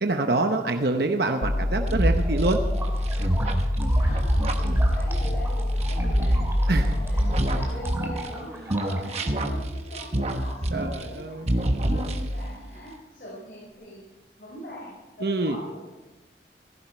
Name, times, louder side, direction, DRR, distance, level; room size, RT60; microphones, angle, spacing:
voice 1, 0.0-2.6 6.7-6.8 10.7-11.5 15.2-15.6, right 2 dB, 65° right, 5 dB, 0.9 m, -25 dB
sound 1, 1.4-7.6, left 1 dB, 85° left, 1.3 m, -26 dB
sound 2, 1.9-8.4 8.7-11.2 11.5-12.5, right 1 dB, 35° right, 1.2 m, -26 dB
sound 3, 2.2-9.2, right 1 dB, 15° right, 2.6 m, -39 dB
voice 2, 3.8-14.0 14.4-15.8, equal, 55° left, -5 dB, 4.8 m, -42 dB
17.0 x 15.0 x 4.5 m, 1.1 s
head